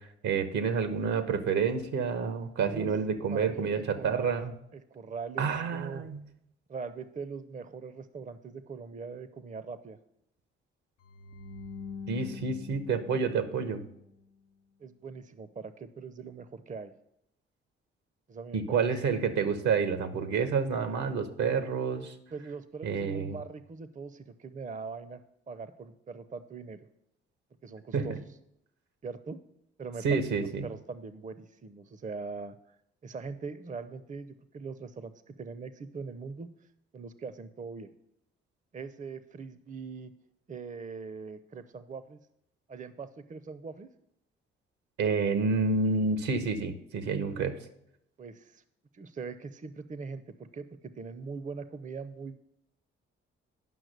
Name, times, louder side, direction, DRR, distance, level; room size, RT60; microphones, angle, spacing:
voice 1, 0.0-4.5 5.4-6.2 12.1-13.8 18.5-22.1 22.8-23.4 27.9-28.1 30.0-30.7 45.0-47.6, right 5 dB, 65° right, 11 dB, 1.1 m, -29 dB
voice 2, 3.3-4.4 4.7-5.5 5.7-6.0 6.7-10.0 12.3-12.4 14.8-16.9 18.3-18.9 22.3-25.2 25.5-26.8 27.6-28.2 29.0-29.4 29.8-32.6 33.0-36.5 36.9-37.9 38.7-40.1 40.5-42.2 42.7-43.9 48.2-48.6 48.9-50.7 51.0-52.4, right 4 dB, 25° right, 13 dB, 0.7 m, -41 dB
sound 1, 11.0-14.2, left 5 dB, 75° left, 0.8 m, -44 dB
9.3 x 6.0 x 6.6 m, 0.78 s
hypercardioid pair, 40°, 31 cm